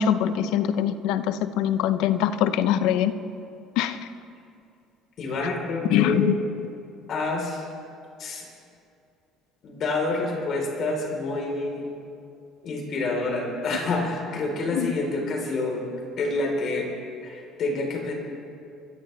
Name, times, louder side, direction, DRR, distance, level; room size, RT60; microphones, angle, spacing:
voice 1, 0.0-3.1 3.8-4.0 5.9-6.3 14.7-14.9, left 10 dB, 75° left, 12 dB, 0.7 m, -23 dB
voice 2, 5.2-6.2 7.1-7.7 8.2-8.5 9.6-11.9 12.6-15.8 16.2-16.9 17.2-18.1, left 2 dB, 55° left, 1 dB, 3.9 m, -28 dB
25.0 x 14.0 x 3.4 m, 2.5 s
supercardioid pair, 85°, 0 cm